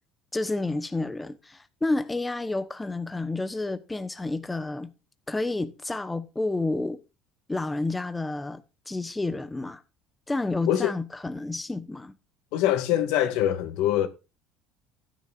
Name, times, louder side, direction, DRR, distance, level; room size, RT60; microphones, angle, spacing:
voice 1, 0.3-4.9 5.3-7.0 7.5-8.6 8.9-9.8 10.3-12.1, left 2 dB, 10° left, 1.0 m, -30 dB
voice 2, 12.5-14.1, left 12 dB, 80° left, 2.1 m, -23 dB
15.0 x 10.5 x 2.5 m
cardioid pair, 120°, 0 cm